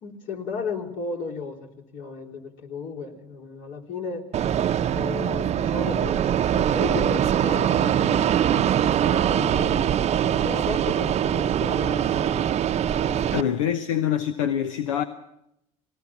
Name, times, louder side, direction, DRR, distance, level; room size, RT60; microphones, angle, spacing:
voice 1, 0.0-4.2 4.9-12.5 12.9-13.6, left 4 dB, 60° left, 3.5 m, -35 dB
Fixed-wing aircraft airplane, 4.3-13.4, right 10 dB, 40° right, 0.7 m, -23 dB
voice 2, 13.3-15.0, left 9 dB, 90° left, 0.9 m, -25 dB
19.5 x 18.5 x 7.3 m
hypercardioid pair, 80°, 16 cm